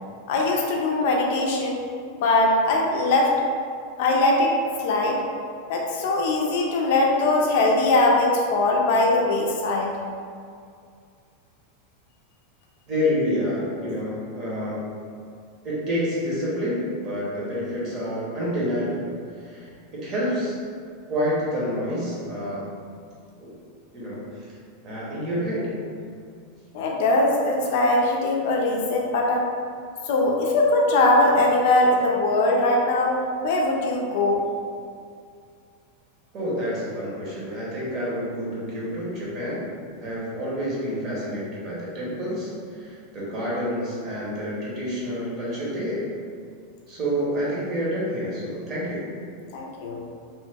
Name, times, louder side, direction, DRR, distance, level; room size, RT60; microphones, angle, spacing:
voice 1, 0.3-1.8 2.2-3.4 4.0-5.2 5.7-9.9 26.7-29.5 30.0-34.5 49.5-50.0, left 2 dB, 60° left, -1 dB, 0.4 m, -21 dB
voice 2, 12.9-14.9 15.6-19.0 19.4-20.6 21.1-22.7 23.3-23.5 23.9-24.6 24.8-25.7 36.3-39.6 40.0-46.1 46.9-49.1, equal, 30° right, -6 dB, 0.9 m, -28 dB
3.0 x 2.0 x 3.4 m, 2.3 s
supercardioid pair, 155°, 0 cm